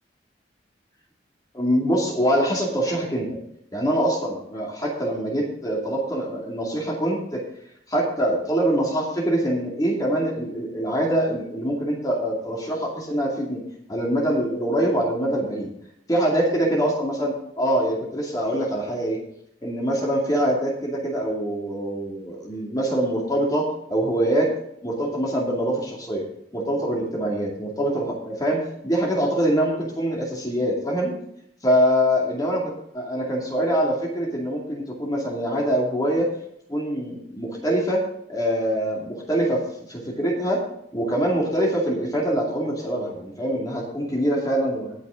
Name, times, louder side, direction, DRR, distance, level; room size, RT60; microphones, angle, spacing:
voice 1, 1.5-3.3 3.7-7.5 7.9-13.6 13.9-15.7 16.1-19.2 19.6-24.5 24.8-26.2 26.5-31.1 31.6-32.6 32.9-36.3 36.7-38.0 38.3-39.6 39.9-40.6 40.9-44.9, equal, 20° left, -2 dB, 2.6 m, -24 dB
18.5 x 6.3 x 3.8 m, 0.74 s
head